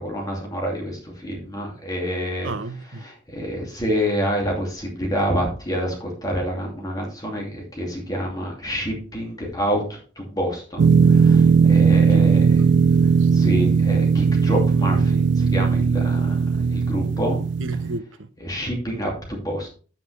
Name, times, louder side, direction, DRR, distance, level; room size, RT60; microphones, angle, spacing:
voice 1, 0.0-2.5 2.9-12.5 13.3-17.4 18.4-19.7, equal, 20° left, 2.6 m, -27 dB
voice 2, 2.4-3.0 12.1-13.3 17.6-18.3, right 3 dB, 85° right, 1.1 m, -33 dB
sound 1, 10.8-18.0, right 5 dB, 60° right, 0.4 m, -17 dB
9.3 x 8.7 x 3.4 m
head